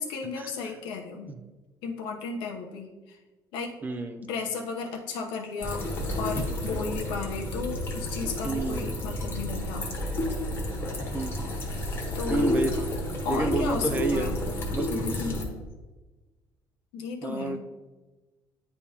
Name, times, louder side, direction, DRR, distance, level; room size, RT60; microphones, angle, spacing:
voice 1, 0.0-1.3 1.8-3.2 3.5-3.8 4.2-5.9 6.2-9.9 12.1-12.5 13.2-14.4 14.9-15.6 16.9-17.6, left 5 dB, 90° left, 1 dB, 0.9 m, -34 dB
voice 2, 3.8-4.2 8.4-8.9 11.1-11.4 12.3-12.9 13.3-14.3 14.7-14.9 17.2-17.6, right 2 dB, 20° right, 6 dB, 0.5 m, -29 dB
sound 1, 5.6-15.4, left 1 dB, 30° left, 1.2 m, -31 dB
9.5 x 3.5 x 2.9 m, 1.2 s
cardioid pair, 145°, 8 cm